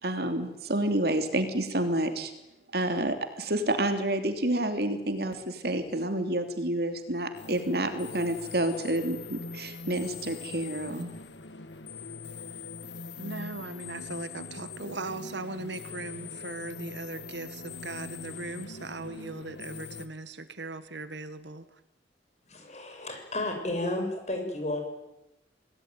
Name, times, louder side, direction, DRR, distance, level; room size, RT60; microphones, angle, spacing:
voice 1, 0.0-2.3 2.7-11.1, right 1 dB, 60° right, 7 dB, 3.0 m, -29 dB
sound 1, 7.3-20.1, left 4 dB, 80° left, 1.7 m, -42 dB
voice 2, 13.2-21.8, right 2 dB, 80° right, 12 dB, 1.8 m, -39 dB
voice 3, 22.5-24.8, left 1 dB, 40° left, 4 dB, 6.8 m, -32 dB
26.5 x 19.0 x 9.4 m, 0.92 s
head